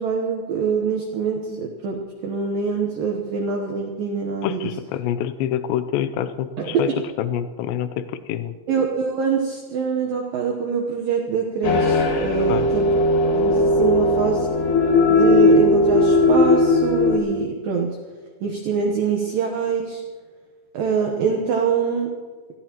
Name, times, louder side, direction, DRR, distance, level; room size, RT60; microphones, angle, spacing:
voice 1, 0.0-4.7 6.6-7.0 8.7-13.0 13.3-14.5 15.1-18.0 18.4-20.0 20.7-22.1, right 6 dB, 80° right, 1 dB, 2.0 m, -24 dB
voice 2, 4.4-6.9 7.2-8.5 12.5-12.7, left 10 dB, 80° left, 10 dB, 2.6 m, -26 dB
sound 1, 11.6-17.2, left 2 dB, 65° left, 3.7 m, -17 dB
25.5 x 15.0 x 3.0 m, 1.5 s
omnidirectional pair, 5.6 m